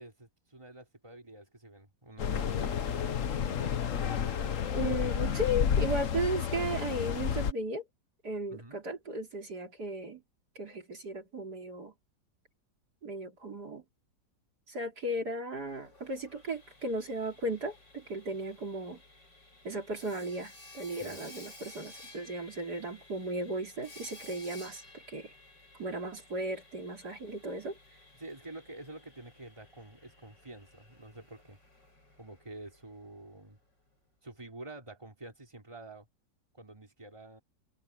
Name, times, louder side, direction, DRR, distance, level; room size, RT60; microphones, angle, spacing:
voice 1, 0.0-3.8 8.5-8.8 21.0-21.2 28.2-31.6 32.2-33.6 34.2-36.1 36.5-37.4, right 2 dB, 15° right, 4.0 m, -48 dB
sound 1, 2.2-7.5, left 7 dB, 50° left, 1.2 m, -31 dB
voice 2, 4.7-7.8 8.2-10.2 10.6-11.9 13.0-13.8 14.7-19.0 19.6-25.3 25.8-27.8, right 1 dB, 60° right, 4.2 m, -36 dB
Sawing, 15.6-33.4, left 2 dB, 75° left, 8.1 m, -55 dB
omnidirectional pair, 1.9 m